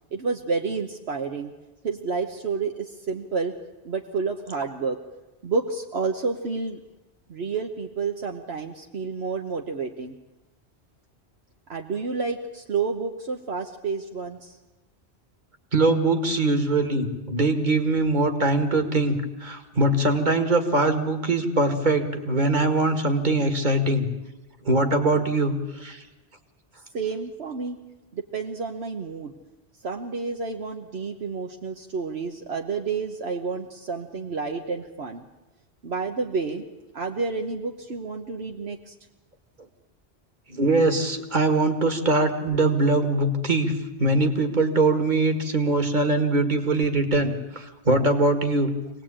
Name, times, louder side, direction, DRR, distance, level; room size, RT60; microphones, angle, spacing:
voice 1, 0.1-1.5 1.8-3.5 3.8-5.0 5.4-6.8 7.3-10.1 11.7-14.6 26.9-27.8 28.1-29.3 29.8-35.2 35.8-36.6 36.9-38.9, right 4 dB, 70° right, 2 dB, 1.4 m, -30 dB
voice 2, 15.7-24.1 24.7-26.0 40.5-43.7 44.0-48.7, right 2 dB, 45° right, 6 dB, 2.1 m, -22 dB
25.5 x 18.5 x 8.8 m, 1.1 s
omnidirectional pair, 1.1 m